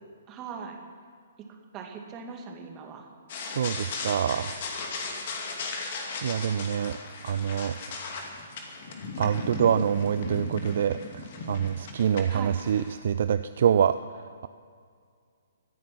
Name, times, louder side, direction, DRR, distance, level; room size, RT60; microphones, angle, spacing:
voice 1, 0.3-0.8 1.7-3.1 12.3-12.6, right 6 dB, 25° right, 2 dB, 2.2 m, -40 dB
sound 1, 3.3-12.9, left 4 dB, 45° left, 2.4 m, -37 dB
voice 2, 3.4-4.6 6.2-7.0 7.2-7.7 9.2-14.5, right 8 dB, 50° right, 12 dB, 0.4 m, -26 dB
25.0 x 9.3 x 6.0 m, 2.2 s
figure-of-eight pair, 125°, 0 cm